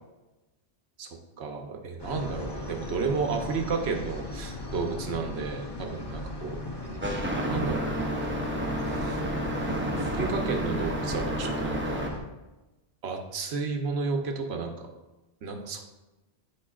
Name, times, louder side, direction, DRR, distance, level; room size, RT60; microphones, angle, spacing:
voice 1, 1.4-8.2 8.8-9.2 9.6-12.0 13.0-14.7 15.4-15.8, right 4 dB, 70° right, 3 dB, 1.0 m, -32 dB
sound 1, 2.0-12.2, left 2 dB, 25° left, 0.6 m, -38 dB
sound 2, 7.0-12.1, right 1 dB, 15° right, 0.4 m, -30 dB
8.7 x 5.0 x 2.4 m, 1.1 s
omnidirectional pair, 1.2 m